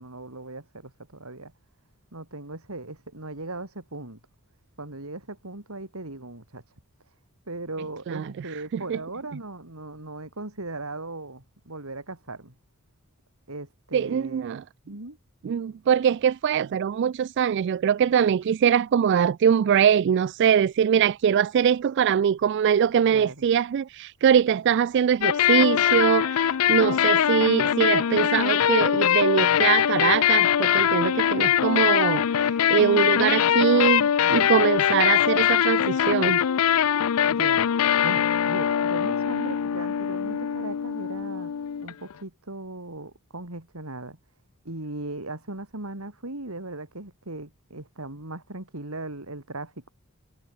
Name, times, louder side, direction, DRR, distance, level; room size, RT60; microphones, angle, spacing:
voice 1, 0.0-1.5 2.1-4.2 4.8-6.6 7.5-12.5 13.5-14.4 14.8-15.2 23.1-23.4 37.2-37.7 38.0-41.5 41.8-44.2 44.6-49.9, right 2 dB, 85° right, 4.0 m, -38 dB
voice 2, 13.9-14.6 15.4-36.4, right 8 dB, 55° right, 0.3 m, -22 dB
sound 1, 25.2-42.1, left 9 dB, 90° left, 0.4 m, -22 dB
head